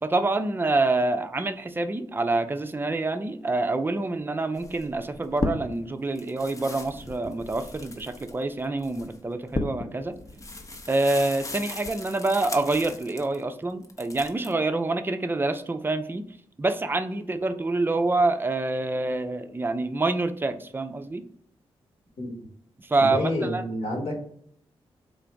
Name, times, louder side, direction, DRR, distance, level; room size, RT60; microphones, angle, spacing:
voice 1, 0.0-10.1 10.9-16.2 16.6-21.2 22.8-23.2 23.5-23.6, right 2 dB, 20° right, 8 dB, 0.4 m, -26 dB
sound 1, 4.6-5.9 6.1-13.4 13.8-14.5, left 2 dB, 30° left, 0.7 m, -36 dB
voice 2, 22.2-22.5 23.0-24.1, left 1 dB, 70° left, 0 dB, 1.4 m, -28 dB
3.8 x 2.5 x 3.3 m, 0.64 s
supercardioid pair, 50°, 11 cm